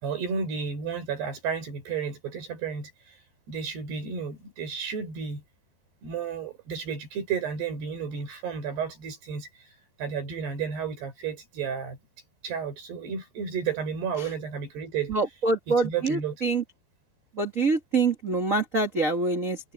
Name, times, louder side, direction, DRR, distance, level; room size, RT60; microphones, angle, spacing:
voice 1, 0.0-3.1 3.5-5.4 6.0-9.5 10.0-12.0 12.4-15.1 15.7-16.4, right 6 dB, 60° right, 7.9 m, -32 dB
voice 2, 15.1-16.6 17.4-19.6, right 3 dB, 40° right, 1.1 m, -25 dB
omnidirectional pair, 5.4 m